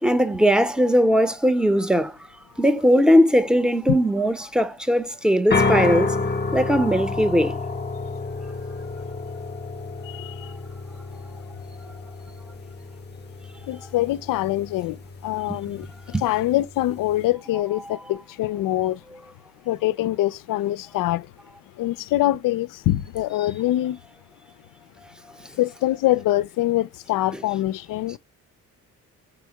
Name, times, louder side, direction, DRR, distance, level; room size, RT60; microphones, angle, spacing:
voice 1, 0.0-2.1 2.6-6.2 6.5-7.6 15.5-15.6 16.1-16.2, equal, ahead, 0.7 m, -19 dB
sound 1, 5.5-17.3, left 3 dB, 30° left, 0.8 m, -30 dB
voice 2, 10.0-10.5 13.7-15.9 16.2-19.0 19.7-21.3 21.8-24.0 25.6-28.2, left 15 dB, 65° left, 0.5 m, -24 dB
5.1 x 3.5 x 2.9 m
supercardioid pair, 60°, 36 cm